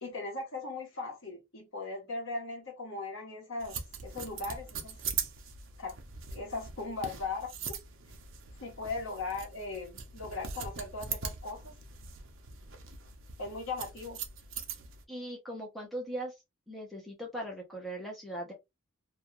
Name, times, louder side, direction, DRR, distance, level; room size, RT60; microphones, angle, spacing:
voice 1, 0.0-5.0 5.8-6.0 6.3-7.5 8.6-11.7 13.4-14.2, left 3 dB, 55° left, 1.0 m, -38 dB
sound 1, 3.6-15.0, right 6 dB, 55° right, 0.5 m, -41 dB
voice 2, 15.1-16.3 16.7-18.5, right 1 dB, ahead, 0.6 m, -39 dB
2.3 x 2.3 x 2.9 m
head